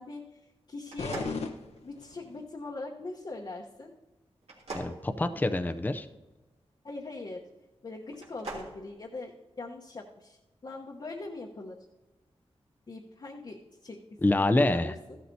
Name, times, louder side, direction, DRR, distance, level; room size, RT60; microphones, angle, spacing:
voice 1, 0.0-1.3 1.8-3.9 6.8-7.4 7.8-11.9 12.9-14.0 14.3-15.2, left 2 dB, 45° left, -1 dB, 1.0 m, -42 dB
sound 1, 0.8-2.2 4.4-6.0 8.1-8.7, right 2 dB, 80° right, 2.7 m, -42 dB
sound 2, 1.0-2.4, left 4 dB, 85° left, 1.0 m, -37 dB
voice 2, 4.7-6.1 14.2-14.9, left 2 dB, 15° left, 9 dB, 0.5 m, -26 dB
14.5 x 12.0 x 2.7 m, 1.1 s
wide cardioid pair, 125°, 11 cm